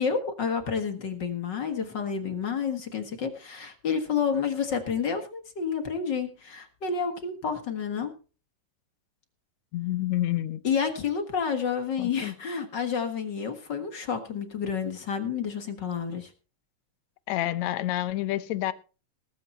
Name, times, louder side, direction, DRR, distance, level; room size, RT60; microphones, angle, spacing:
voice 1, 0.0-8.1 10.6-16.3, left 6 dB, 45° left, 1.7 m, -29 dB
voice 2, 9.7-10.6 12.0-12.3 17.3-18.7, left 14 dB, 70° left, 1.9 m, -28 dB
19.5 x 7.9 x 4.4 m
omnidirectional pair, 3.9 m